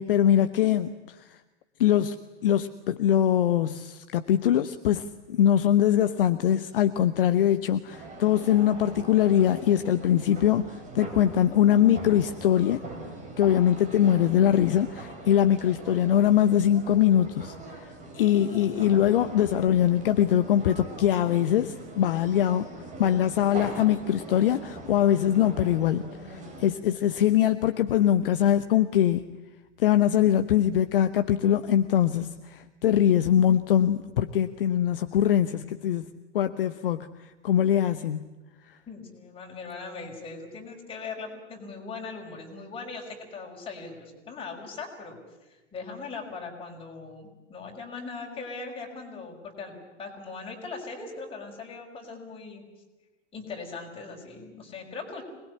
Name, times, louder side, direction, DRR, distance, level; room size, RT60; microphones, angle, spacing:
voice 1, 0.0-1.4 1.8-2.2 2.4-12.8 13.4-22.7 23.0-29.2 29.8-38.3 38.7-38.8, left 10 dB, 50° left, 10 dB, 1.0 m, -23 dB
sound 1, 7.9-26.7, right 2 dB, 20° right, 5.3 m, -42 dB
voice 2, 38.9-45.2 45.5-52.6 53.3-55.2, left 4 dB, 15° left, 0 dB, 5.8 m, -40 dB
26.0 x 20.5 x 9.8 m, 1.1 s
figure-of-eight pair, 105°, 36 cm